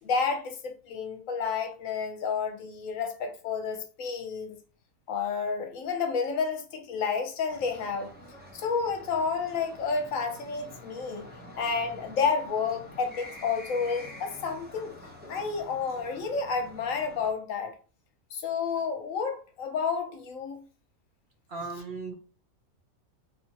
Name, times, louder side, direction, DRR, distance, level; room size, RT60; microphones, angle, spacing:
voice 1, 0.0-4.6 5.1-8.1 8.5-11.3 11.6-14.9 15.3-17.7 18.3-20.6, left 5 dB, 70° left, 1.1 m, -30 dB
sound 1, 7.5-17.3, left 1 dB, 10° right, 0.6 m, -47 dB
voice 2, 21.5-22.1, right 3 dB, 50° right, 0.8 m, -36 dB
4.3 x 3.4 x 2.8 m
omnidirectional pair, 1.5 m